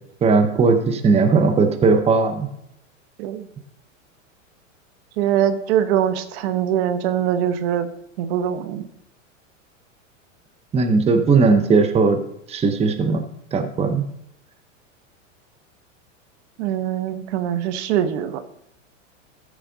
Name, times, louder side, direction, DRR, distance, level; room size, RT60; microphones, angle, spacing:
voice 1, 0.2-2.5 10.7-12.2 12.5-13.2 13.5-14.0, right 4 dB, 15° right, 7 dB, 0.8 m, -17 dB
voice 2, 5.2-7.9 8.2-8.9 16.6-18.4, right 10 dB, 55° right, 10 dB, 1.0 m, -22 dB
13.5 x 4.8 x 3.9 m, 0.75 s
hypercardioid pair, 115°, 39 cm